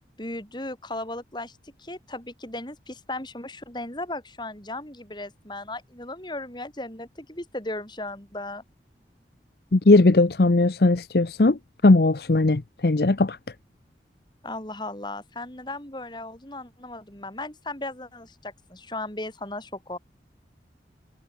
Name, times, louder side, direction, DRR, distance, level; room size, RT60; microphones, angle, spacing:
voice 1, 0.2-8.6 14.4-20.0, left 2 dB, 25° left, 4.1 m, -36 dB
voice 2, 9.7-11.6 11.8-13.4, left 2 dB, 60° left, 0.8 m, -18 dB
head